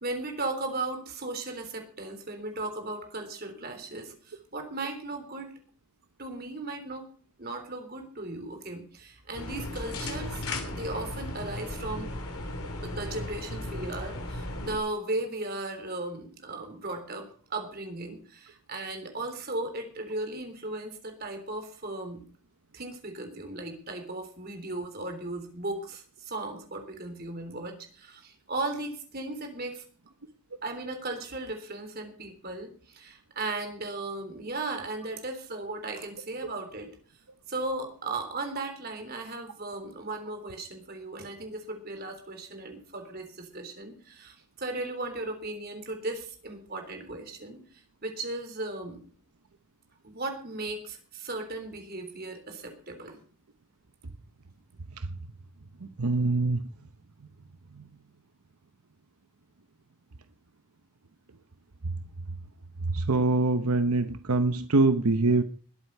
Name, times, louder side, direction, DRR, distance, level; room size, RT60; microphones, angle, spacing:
voice 1, 0.0-5.5 6.2-7.1 7.4-12.1 12.8-22.2 22.7-29.8 30.6-36.9 37.5-47.6 48.0-49.0 50.0-53.2, right 2 dB, 45° right, 5 dB, 3.6 m, -36 dB
sound 1, 9.3-14.8, left 1 dB, 80° left, 3.2 m, -36 dB
voice 2, 56.0-56.6 62.9-65.4, right 3 dB, 80° right, 10 dB, 0.8 m, -24 dB
20.5 x 8.2 x 5.5 m, 0.43 s
head